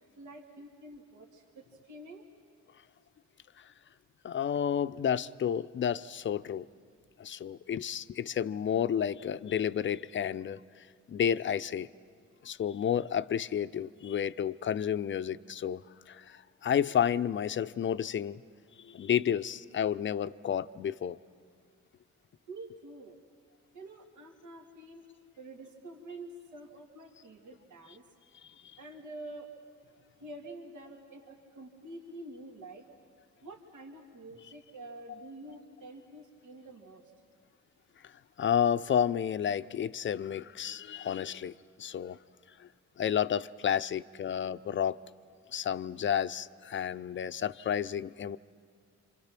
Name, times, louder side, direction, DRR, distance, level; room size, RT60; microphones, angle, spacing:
voice 1, 0.2-2.2 22.5-23.2 23.7-25.1 25.4-28.0 28.8-29.5 30.2-32.8 33.4-37.1, right 2 dB, 75° right, 1 dB, 2.5 m, -47 dB
voice 2, 4.2-6.7 7.2-10.6 11.1-11.9 12.4-18.4 18.8-21.2 38.4-42.2 42.6-42.7 43.0-45.0 45.5-48.4, left 9 dB, 40° left, 13 dB, 0.6 m, -31 dB
27.5 x 26.0 x 6.0 m, 2.1 s
cardioid pair, 90°, 30 cm